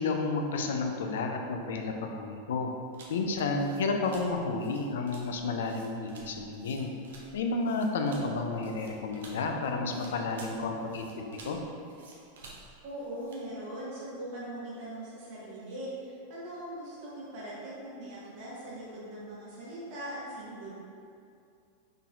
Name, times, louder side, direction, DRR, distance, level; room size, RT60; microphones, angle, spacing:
voice 1, 0.0-2.7 3.1-6.9 7.3-11.6, left 3 dB, 60° left, 4 dB, 0.4 m, -31 dB
sound 1, 2.9-13.5, right 3 dB, 60° right, 0.5 m, -52 dB
voice 2, 12.8-20.7, right 1 dB, 45° right, -8 dB, 1.4 m, -41 dB
4.0 x 3.8 x 2.5 m, 2.5 s
figure-of-eight pair, 90°, 0 cm